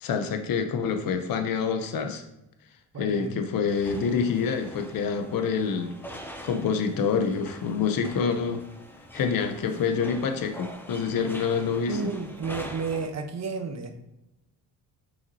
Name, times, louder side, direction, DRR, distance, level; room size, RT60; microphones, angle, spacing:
voice 1, 0.0-2.2 3.0-6.0 6.4-8.6 9.1-12.1, left 6 dB, 60° left, 6 dB, 0.7 m, -27 dB
voice 2, 2.9-3.4 11.9-13.9, right 4 dB, 40° right, 5 dB, 0.9 m, -32 dB
sound 1, 3.7-13.1, equal, 5° left, 0.6 m, -44 dB
6.9 x 5.9 x 2.7 m, 0.91 s
cardioid pair, 130°, 39 cm